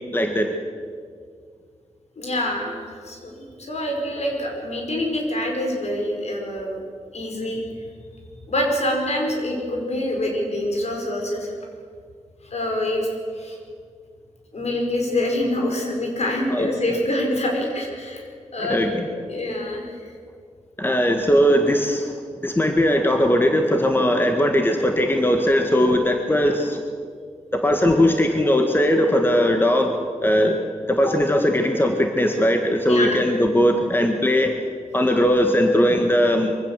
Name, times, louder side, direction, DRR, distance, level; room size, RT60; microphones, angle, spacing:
voice 1, 0.1-0.5 16.5-16.7 18.6-19.1 20.8-22.1 22.4-26.8 27.5-30.6 30.9-34.5 34.9-36.5, equal, 15° left, 4 dB, 1.7 m, -19 dB
voice 2, 2.2-2.8 3.0-3.3 3.6-6.8 7.1-7.6 8.5-11.5 12.5-13.6 14.5-18.2 18.5-18.8 19.1-20.1 31.1-31.2 32.8-33.2, left 1 dB, 60° left, 1 dB, 5.2 m, -25 dB
23.5 x 15.5 x 7.6 m, 2.1 s
wide cardioid pair, 85°, 12 cm